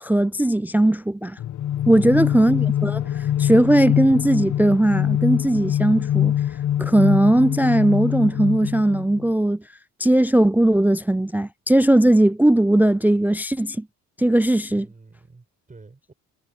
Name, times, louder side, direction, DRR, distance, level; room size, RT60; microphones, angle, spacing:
voice 1, 0.0-1.4 1.9-6.3 6.8-9.6 10.0-13.9 14.2-14.9, right 1 dB, 5° right, 0.3 m, -18 dB
sound 1, 1.4-9.3, left 11 dB, 55° left, 1.1 m, -24 dB
voice 2, 1.9-2.4 14.7-16.1, right 3 dB, 25° right, 7.2 m, -47 dB
cardioid pair, 90°, 34 cm